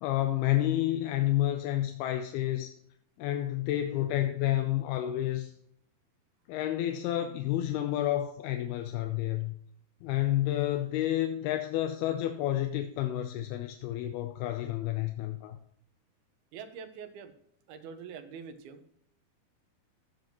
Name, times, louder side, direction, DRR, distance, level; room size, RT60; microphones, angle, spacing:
voice 1, 0.0-2.7 3.2-5.5 6.5-9.5 10.0-15.6, left 13 dB, 85° left, 6 dB, 2.7 m, -30 dB
voice 2, 16.5-17.3 17.7-18.9, right 6 dB, 80° right, 7 dB, 3.0 m, -44 dB
14.5 x 7.5 x 3.0 m, 0.67 s
omnidirectional pair, 4.4 m